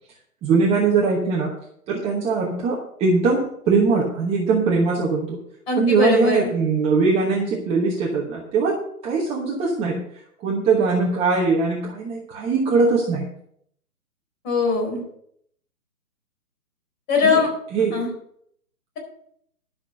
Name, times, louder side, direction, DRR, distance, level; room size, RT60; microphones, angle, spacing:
voice 1, 0.4-1.5 1.9-5.4 5.8-10.0 10.4-13.2 17.2-17.4 17.7-18.0, right 4 dB, 15° right, -3 dB, 1.1 m, -21 dB
voice 2, 5.7-6.5 14.4-15.0 17.1-17.5 17.9-18.1, left 4 dB, 25° left, 0 dB, 4.1 m, -20 dB
12.0 x 6.2 x 6.4 m, 0.69 s
hypercardioid pair, 140°, 45 cm